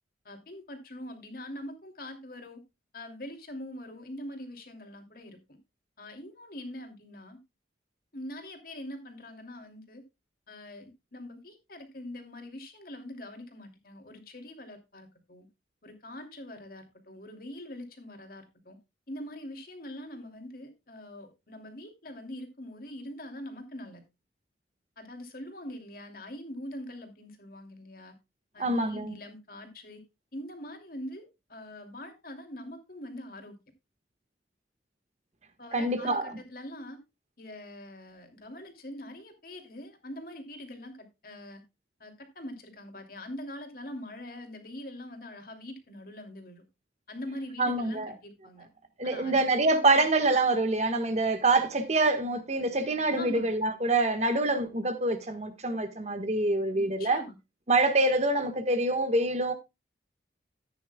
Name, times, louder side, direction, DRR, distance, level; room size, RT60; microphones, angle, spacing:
voice 1, 0.2-2.6 2.9-5.6 6.0-7.4 8.1-10.0 10.5-15.5 15.8-18.8 19.1-24.0 25.0-28.1 28.5-30.0 30.3-33.5 35.6-37.0 37.4-41.6 42.0-46.6 47.1-48.7 49.0-49.8 53.1-53.5 56.7-57.4, left 1 dB, 55° left, 2.7 m, -43 dB
voice 2, 28.6-29.1 35.7-36.3 47.6-48.1 49.0-57.2 57.7-59.5, right 2 dB, 40° right, 1.5 m, -26 dB
14.5 x 9.7 x 2.3 m
head